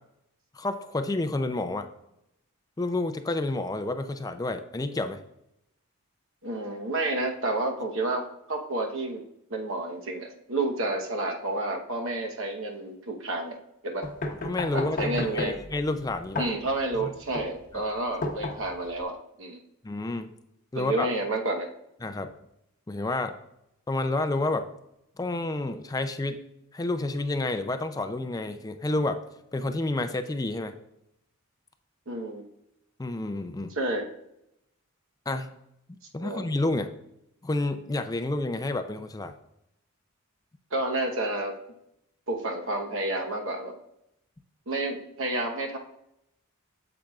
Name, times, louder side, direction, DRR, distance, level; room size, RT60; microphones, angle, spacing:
voice 1, 0.5-1.9 2.8-5.2 14.4-16.4 17.0-17.1 19.8-20.3 20.7-21.1 22.0-22.3 22.9-23.3 23.9-24.6 25.2-26.4 26.7-29.2 29.5-30.7 33.0-33.8 35.3-35.5 36.1-36.9 37.4-39.3, left 2 dB, 15° left, 9 dB, 0.4 m, -29 dB
voice 2, 6.4-9.2 9.5-13.6 13.8-14.1 14.7-15.6 16.4-19.6 20.7-21.7 32.1-32.4 33.8-34.1 36.2-36.4 40.7-41.5 42.3-43.8 44.7-45.8, right 2 dB, 60° right, 2 dB, 1.0 m, -30 dB
sound 1, 14.0-19.0, left 2 dB, 35° left, 0.8 m, -34 dB
8.5 x 7.7 x 2.4 m, 0.81 s
head